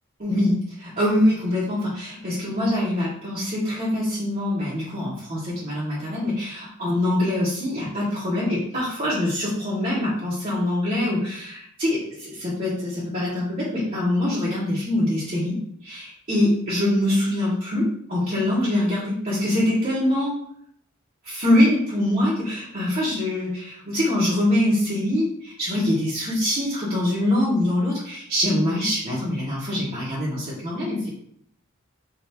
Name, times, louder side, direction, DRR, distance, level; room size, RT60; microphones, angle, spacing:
voice 1, 0.2-15.6 15.8-20.3 21.2-31.1, left 1 dB, 45° right, -10 dB, 1.4 m, -24 dB
5.1 x 2.8 x 2.9 m, 0.68 s
head